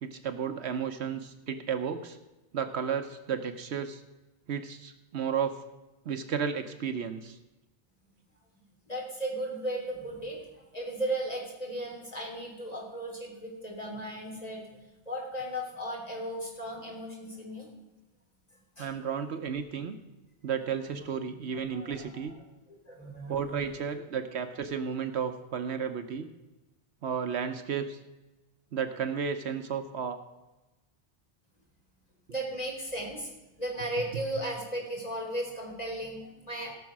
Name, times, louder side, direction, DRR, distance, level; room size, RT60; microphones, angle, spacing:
voice 1, 0.0-2.2 2.5-4.0 4.5-5.6 6.0-7.4 18.8-20.0 20.4-22.3 23.3-26.3 27.0-28.0 28.7-30.2, right 7 dB, 70° right, 8 dB, 1.1 m, -33 dB
voice 2, 8.5-17.7 18.5-18.9 20.9-21.1 21.7-22.4 22.9-23.6 32.3-36.7, right 1 dB, 35° left, -2 dB, 3.5 m, -36 dB
17.5 x 6.3 x 6.0 m, 1.1 s
omnidirectional pair, 1.2 m